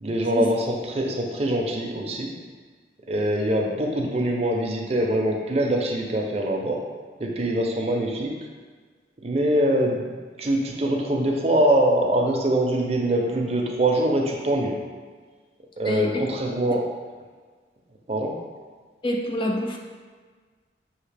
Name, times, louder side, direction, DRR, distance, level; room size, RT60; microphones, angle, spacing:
voice 1, 0.0-2.3 3.1-6.8 7.2-8.3 9.2-14.8 15.8-16.8 18.1-18.4, right 1 dB, 35° right, 0 dB, 0.5 m, -23 dB
voice 2, 15.8-16.3 19.0-19.8, left 1 dB, 25° left, 1 dB, 0.3 m, -26 dB
5.7 x 2.8 x 3.3 m, 1.5 s
head